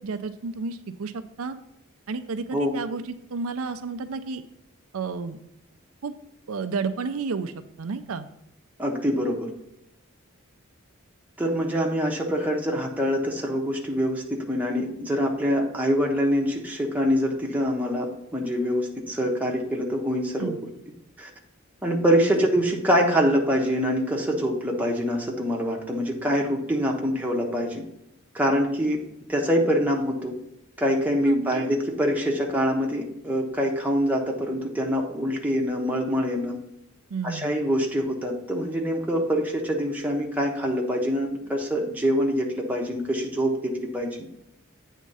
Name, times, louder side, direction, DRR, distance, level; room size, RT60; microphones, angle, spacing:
voice 1, 0.0-1.6 2.1-4.4 4.9-5.4 6.0-6.1 6.5-7.5 7.8-8.3 20.4-20.6 22.4-22.5 31.2-31.7 37.1-37.5, right 4 dB, 85° right, 9 dB, 0.5 m, -31 dB
voice 2, 8.8-9.5 11.4-20.5 21.2-21.3 21.8-27.8 28.3-29.0 29.3-30.4 30.8-36.6 37.2-44.3, equal, 5° right, -1 dB, 1.0 m, -25 dB
8.3 x 3.7 x 5.5 m, 0.83 s
head